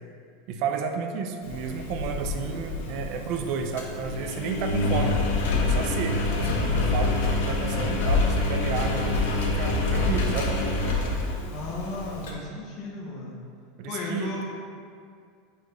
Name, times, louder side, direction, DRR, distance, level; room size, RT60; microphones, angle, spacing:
voice 1, 0.5-5.2 5.6-10.5 13.8-14.4, right 5 dB, 45° right, 5 dB, 0.5 m, -32 dB
Engine, 1.4-12.3, left 2 dB, 80° left, 1.0 m, -26 dB
voice 2, 11.5-13.3 13.9-14.4, left 2 dB, 35° left, -3 dB, 0.9 m, -34 dB
4.8 x 4.2 x 5.2 m, 2.3 s
supercardioid pair, 165°, 0 cm